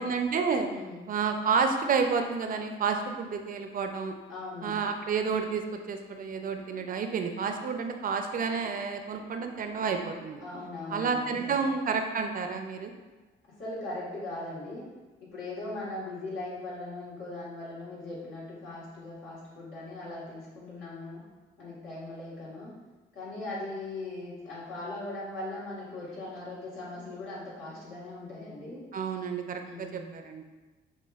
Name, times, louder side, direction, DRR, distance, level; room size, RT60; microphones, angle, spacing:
voice 1, 0.0-0.7 1.1-4.1 4.6-10.4 10.9-12.9 28.9-30.4, right 5 dB, 45° right, 5 dB, 0.4 m, -30 dB
voice 2, 0.6-1.0 4.3-4.8 10.4-11.7 13.6-14.9 15.2-21.2 21.6-22.7 23.1-28.8 29.7-30.1, left 2 dB, 90° left, -7 dB, 1.4 m, -39 dB
6.1 x 2.2 x 2.3 m, 1.2 s
cardioid pair, 90°, 20 cm